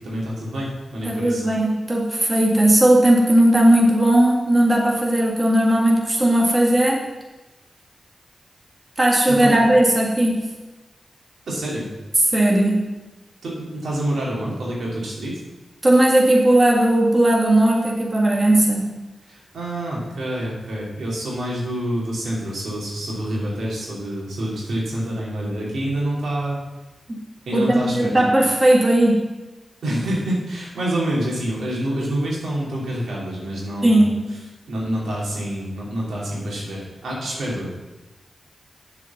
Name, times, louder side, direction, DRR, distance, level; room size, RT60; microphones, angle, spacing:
voice 1, 0.0-1.4 9.3-9.6 11.5-11.9 13.4-15.4 19.3-26.6 27.5-28.1 29.8-34.1 34.7-37.8, right 1 dB, 90° right, -5 dB, 2.7 m, -27 dB
voice 2, 1.0-7.1 9.0-10.5 12.3-12.8 15.8-18.9 27.1-27.2 27.5-29.3 33.8-34.3, right 1 dB, 30° right, -2 dB, 1.8 m, -17 dB
7.4 x 5.1 x 7.1 m, 1.1 s
cardioid pair, 60°, 0 cm